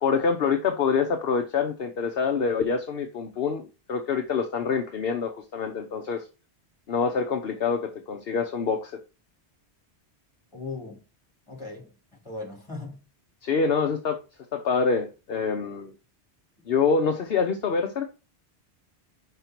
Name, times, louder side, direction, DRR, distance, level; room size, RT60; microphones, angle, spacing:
voice 1, 0.0-6.3 6.9-9.0 13.4-14.2 14.5-15.9 16.7-18.1, left 5 dB, 60° left, 1.0 m, -26 dB
voice 2, 10.5-11.0 11.5-13.0, left 3 dB, 25° left, 3.1 m, -38 dB
5.7 x 5.4 x 4.4 m
omnidirectional pair, 1.1 m